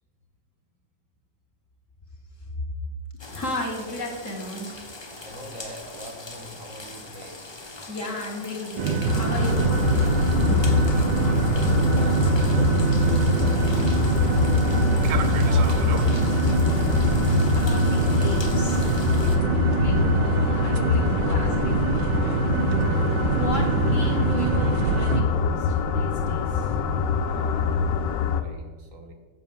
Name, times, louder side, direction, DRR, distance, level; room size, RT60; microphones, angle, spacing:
voice 1, 3.2-4.8 7.9-9.9 17.5-18.9 19.8-22.3 23.3-26.7, left 1 dB, 45° left, -1 dB, 2.5 m, -35 dB
sound 1, 3.2-19.4, left 2 dB, 30° left, 0.5 m, -41 dB
voice 2, 5.2-7.4 10.3-12.8 13.2-16.4 19.1-19.5 27.0-29.1, right 1 dB, 50° right, 4 dB, 1.6 m, -43 dB
sound 2, 8.8-25.2, right 7 dB, 80° right, 1.3 m, -24 dB
sound 3, 9.1-28.4, left 5 dB, 85° left, 1.4 m, -24 dB
8.4 x 7.1 x 7.2 m, 1.4 s
omnidirectional pair, 1.9 m